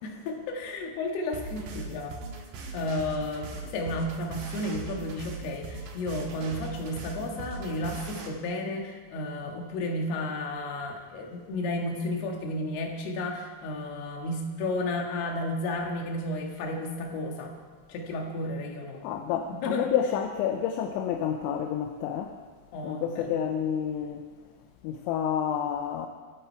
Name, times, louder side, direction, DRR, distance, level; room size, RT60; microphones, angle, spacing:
voice 1, 0.0-2.2 2.7-17.5 17.9-19.0 19.5-19.9 22.7-23.4, left 1 dB, 65° left, 2 dB, 3.5 m, -32 dB
sound 1, 1.3-8.3, right 3 dB, 70° right, 3.6 m, -40 dB
voice 2, 19.0-22.4 22.8-24.3 24.8-26.1, left 9 dB, 85° left, 5 dB, 3.0 m, -29 dB
25.5 x 8.9 x 4.6 m, 1.5 s
omnidirectional pair, 5.3 m